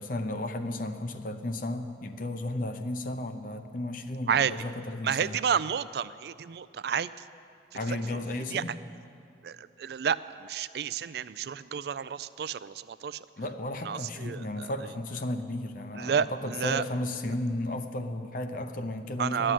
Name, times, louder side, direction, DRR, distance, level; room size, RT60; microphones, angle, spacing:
voice 1, 0.0-5.4 7.7-8.7 13.4-19.5, left 1 dB, 50° left, 7 dB, 0.7 m, -34 dB
voice 2, 5.0-7.1 7.9-8.2 8.5-8.6 9.4-13.2 13.8-14.7 15.9-16.8 19.2-19.5, right 7 dB, 60° right, 16 dB, 0.3 m, -30 dB
12.5 x 7.6 x 9.9 m, 2.4 s
head